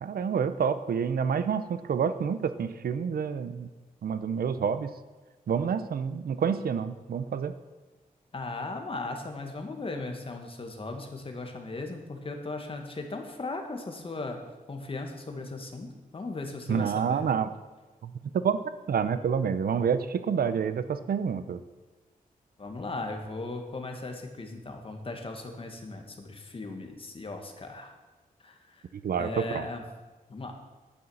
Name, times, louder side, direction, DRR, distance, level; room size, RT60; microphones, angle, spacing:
voice 1, 0.0-3.7 4.0-4.9 5.5-7.5 16.7-17.5 18.0-18.1 18.4-18.6 18.9-21.6 29.0-29.7, right 7 dB, 90° right, 12 dB, 0.8 m, -28 dB
voice 2, 8.3-14.4 14.7-17.2 22.6-27.9 28.4-28.8 29.2-29.8 30.3-30.7, left 3 dB, 40° left, 4 dB, 1.8 m, -37 dB
10.0 x 9.5 x 7.2 m, 1.2 s
wide cardioid pair, 130°, 15 cm